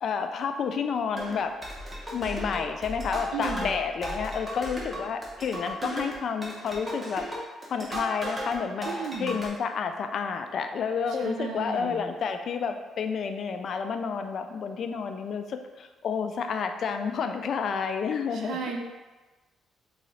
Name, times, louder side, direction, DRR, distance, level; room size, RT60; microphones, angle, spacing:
voice 1, 0.0-1.5 2.1-7.3 7.7-18.6, left 6 dB, 60° left, 7 dB, 0.3 m, -30 dB
sound 1, 1.2-8.6 8.8-9.5, equal, 25° right, 0.9 m, -36 dB
voice 2, 3.3-3.7 8.8-9.3 11.2-12.0 18.3-18.8, right 5 dB, 80° right, 2 dB, 0.5 m, -34 dB
3.7 x 2.6 x 3.1 m, 1.2 s
cardioid pair, 90°, 0 cm